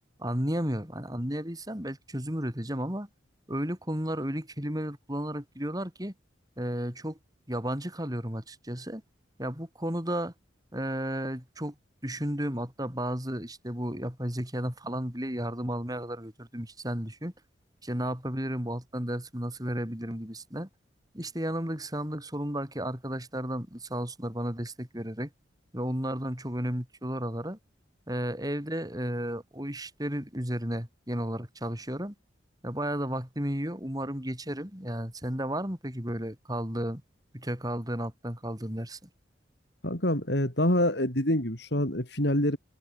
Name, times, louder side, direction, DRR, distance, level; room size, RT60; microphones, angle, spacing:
voice 1, 0.2-3.1 3.5-6.1 6.6-7.2 7.5-9.0 9.4-10.3 10.7-11.7 12.0-17.3 17.8-20.7 21.1-25.3 25.7-27.6 28.1-32.1 32.6-37.0 37.3-39.1, equal, 20° right, 6.4 m, -33 dB
voice 2, 39.8-42.6, left 1 dB, 60° left, 4.7 m, -26 dB
head